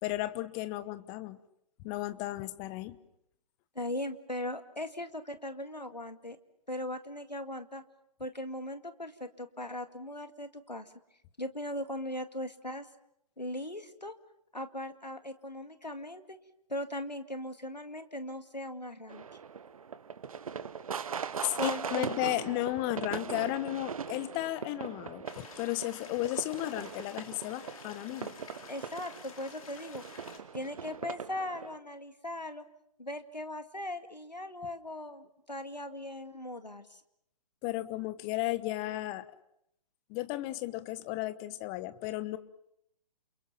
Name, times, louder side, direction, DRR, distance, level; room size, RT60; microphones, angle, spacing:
voice 1, 0.0-1.4 1.8-3.0 21.4-28.3 37.6-39.3 40.1-42.4, left 17 dB, 20° left, 14 dB, 1.1 m, -34 dB
voice 2, 3.8-6.4 6.7-7.8 8.2-10.9 11.4-12.9 13.4-14.1 14.5-16.4 16.7-19.3 21.6-22.3 28.7-30.0 30.5-32.7 33.0-37.0, left 1 dB, 90° left, 9 dB, 2.2 m, -39 dB
sound 1, 19.1-31.8, right 7 dB, 55° right, 1.3 m, -40 dB
sound 2, 25.3-30.4, left 5 dB, 55° left, 4.6 m, -51 dB
29.0 x 28.5 x 6.0 m, 0.75 s
figure-of-eight pair, 130°, 21 cm